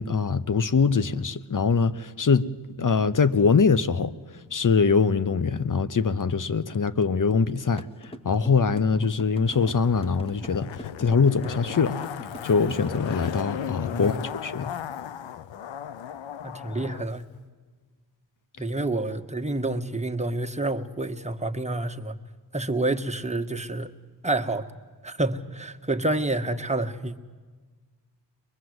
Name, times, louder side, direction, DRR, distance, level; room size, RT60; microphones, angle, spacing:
voice 1, 0.0-2.5 2.8-4.1 4.5-7.9 8.2-12.0 12.4-14.7, left 5 dB, 45° left, 1.0 m, -23 dB
sound 1, 7.8-13.1, right 1 dB, 10° left, 1.5 m, -42 dB
Zipper (clothing), 9.4-17.1 17.3-17.4, left 9 dB, 85° left, 0.8 m, -36 dB
voice 2, 13.9-14.2 16.4-17.2 18.6-22.1 22.5-23.9 24.2-24.6 25.0-27.1, right 2 dB, 15° right, 1.5 m, -28 dB
23.5 x 21.0 x 8.0 m
cardioid pair, 50°, 44 cm